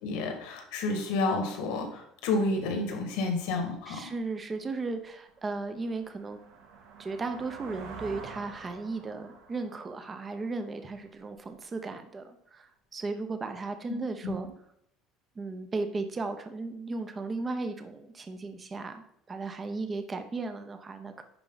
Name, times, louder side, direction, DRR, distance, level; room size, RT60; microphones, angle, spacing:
voice 1, 0.0-4.1 14.2-14.3, left 3 dB, 85° left, 4 dB, 2.1 m, -30 dB
voice 2, 3.9-6.4 7.0-14.5 15.4-21.2, right 3 dB, 20° right, 8 dB, 0.7 m, -36 dB
sound 1, 4.2-4.3 4.8-11.4, right 4 dB, 75° right, 2.0 m, -48 dB
10.5 x 4.7 x 4.0 m, 0.74 s
cardioid pair, 165°, 0 cm